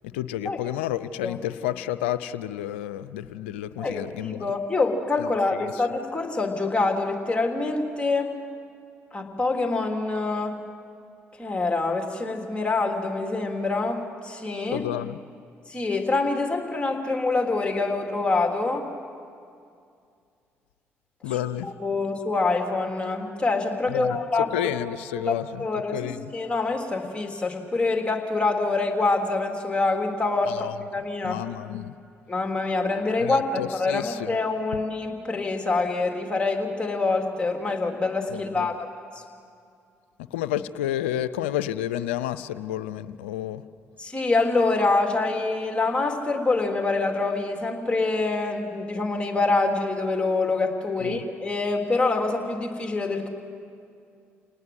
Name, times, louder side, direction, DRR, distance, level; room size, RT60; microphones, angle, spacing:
voice 1, 0.0-4.5 5.2-5.8 14.7-15.2 21.2-21.7 23.9-24.2 24.5-25.6 25.9-26.3 30.5-30.8 31.2-31.9 33.2-34.3 38.3-38.7 40.3-43.6 51.0-51.2, left 12 dB, 90° left, 13 dB, 0.6 m, -31 dB
voice 2, 3.8-8.4 9.1-10.6 11.4-14.9 15.7-18.9 21.6-24.5 25.2-25.3 25.6-30.7 30.9-31.4 32.3-38.9 44.0-53.3, left 3 dB, 15° left, 3 dB, 3.5 m, -25 dB
28.5 x 19.0 x 7.9 m, 2.4 s
hypercardioid pair, 50°, 6 cm